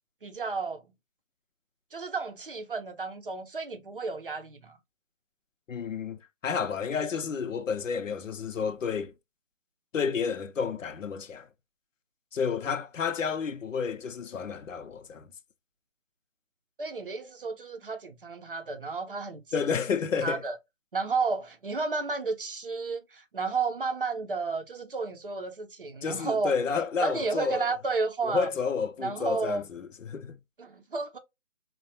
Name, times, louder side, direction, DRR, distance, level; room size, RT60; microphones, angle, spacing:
voice 1, 0.2-0.8 1.9-4.8 16.8-19.4 20.2-20.6 20.9-26.6 27.0-28.5 29.0-29.6 30.6-31.2, right 4 dB, 45° right, 0.6 m, -32 dB
voice 2, 5.7-9.1 9.9-11.5 12.3-15.3 19.5-20.4 26.0-27.6 28.2-30.4, left 6 dB, 70° left, 0.7 m, -30 dB
4.5 x 2.2 x 2.7 m
figure-of-eight pair, 155°, 40 cm